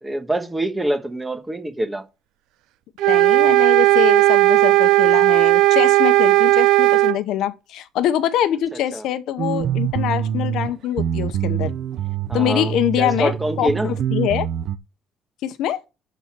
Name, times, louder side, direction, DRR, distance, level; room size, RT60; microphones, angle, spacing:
voice 1, 0.0-2.0 8.9-9.0 12.3-13.9, right 1 dB, 10° right, 1.4 m, -25 dB
sound 1, 3.0-7.2, right 17 dB, 85° right, 0.6 m, -15 dB
voice 2, 3.1-11.7 12.3-13.3 13.6-14.5 15.4-15.8, left 11 dB, 70° left, 0.8 m, -24 dB
sound 2, 9.4-10.7 11.0-14.8, right 9 dB, 55° right, 0.8 m, -25 dB
11.5 x 4.2 x 7.4 m
cardioid pair, 155°, 0 cm